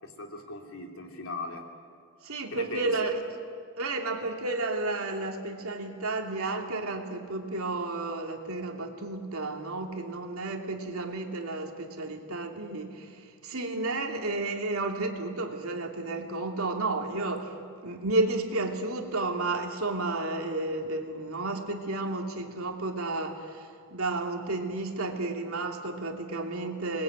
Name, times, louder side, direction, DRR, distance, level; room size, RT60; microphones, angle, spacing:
voice 1, 0.0-1.7 2.5-3.1, left 2 dB, 65° left, 2 dB, 3.2 m, -39 dB
voice 2, 2.2-3.2 3.8-17.6 17.8-27.0, right 2 dB, 70° right, 2 dB, 2.9 m, -32 dB
27.0 x 21.0 x 9.1 m, 2.2 s
head